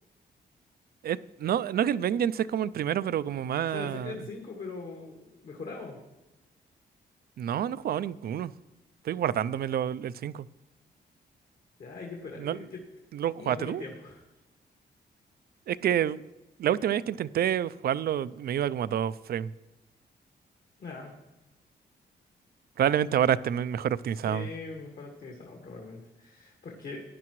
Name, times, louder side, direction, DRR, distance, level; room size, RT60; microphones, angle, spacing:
voice 1, 1.0-4.2 7.4-8.5 9.1-10.5 12.4-12.6 13.1-13.8 15.7-16.2 16.6-19.5 22.8-24.5, right 10 dB, 65° right, 0.4 m, -28 dB
voice 2, 3.7-6.0 11.8-12.8 13.3-14.2 20.8-21.1 24.3-27.0, left 4 dB, 60° left, 1.9 m, -41 dB
15.5 x 10.0 x 3.1 m
cardioid pair, 95°, 17 cm